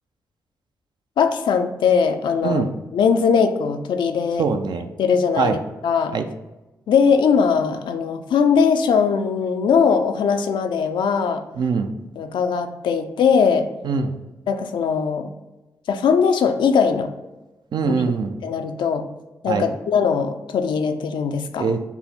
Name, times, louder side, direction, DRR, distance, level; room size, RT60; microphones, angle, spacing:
voice 1, 1.2-2.6 2.9-4.5 5.0-6.1 6.9-11.4 12.2-13.7 14.5-15.3 15.9-17.1 18.4-19.1 19.4-21.7, left 6 dB, 75° left, 7 dB, 0.4 m, -20 dB
voice 2, 4.4-4.9 5.4-5.6 6.1-6.3 11.6-11.9 13.8-14.2 17.7-18.4 19.5-19.7 21.6-21.8, right 5 dB, 60° right, 7 dB, 0.4 m, -22 dB
5.4 x 2.0 x 4.2 m, 1.1 s
supercardioid pair, 40°, 8 cm